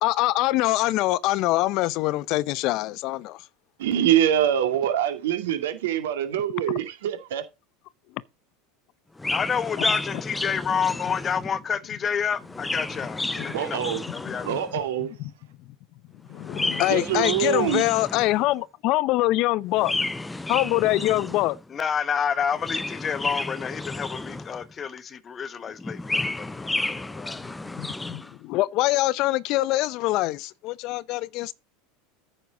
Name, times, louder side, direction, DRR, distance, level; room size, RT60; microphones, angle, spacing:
voice 1, 0.0-3.4 13.4-13.5 15.2-15.3 16.3-19.9 20.5-21.6 27.4-31.5, left 17 dB, 55° left, 0.6 m, -24 dB
voice 2, 3.8-7.4 13.5-14.0 14.4-15.1 16.9-17.8, right 10 dB, 80° right, 2.2 m, -24 dB
Chirp tweet, 9.2-11.6 12.3-14.8 16.3-18.5 19.7-21.6 22.4-24.7 25.8-28.3, left 2 dB, 10° left, 0.6 m, -31 dB
voice 3, 9.3-13.8 14.1-14.5 21.7-27.4, left 7 dB, 30° left, 1.0 m, -29 dB
9.6 x 6.6 x 3.8 m
hypercardioid pair, 100°, 0 cm